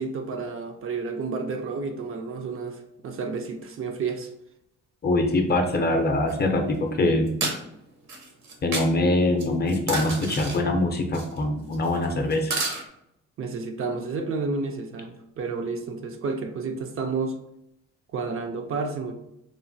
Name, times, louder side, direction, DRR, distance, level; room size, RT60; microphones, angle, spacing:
voice 1, 0.0-4.3 13.4-17.4 18.1-19.1, right 4 dB, 45° right, 5 dB, 0.4 m, -31 dB
voice 2, 5.0-7.3 8.6-12.5, left 2 dB, 35° left, 4 dB, 0.5 m, -23 dB
sound 1, 6.3-6.4 7.3-7.6 8.1-8.9 9.4-10.6 11.1-11.4 11.7-12.1 12.3-12.8, right 3 dB, 65° right, 0.8 m, -30 dB
3.1 x 2.1 x 2.5 m, 0.81 s
cardioid pair, 90°, 30 cm